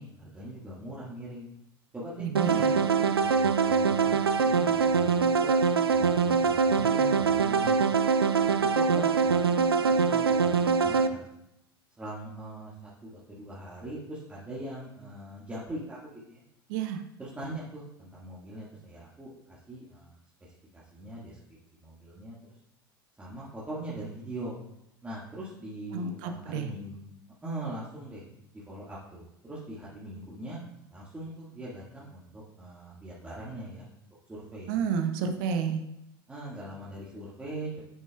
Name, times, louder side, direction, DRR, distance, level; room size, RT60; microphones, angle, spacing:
voice 1, 0.0-1.5 1.9-5.6 5.9-8.0 8.4-11.3 12.0-16.4 17.2-20.1 20.4-21.4 21.8-22.4 23.2-24.6 25.0-27.0 27.4-28.2 28.5-30.6 30.9-33.9 34.3-34.8 36.3-37.8, right 1 dB, 10° right, -7 dB, 1.8 m, -41 dB
voice 2, 2.2-2.8 16.7-17.0 25.9-26.7 34.7-35.8, right 6 dB, 55° right, 7 dB, 0.9 m, -30 dB
sound 1, 2.4-11.1, right 5 dB, 80° right, 0.5 m, -24 dB
8.5 x 7.2 x 2.3 m, 0.83 s
figure-of-eight pair, 80°, 13 cm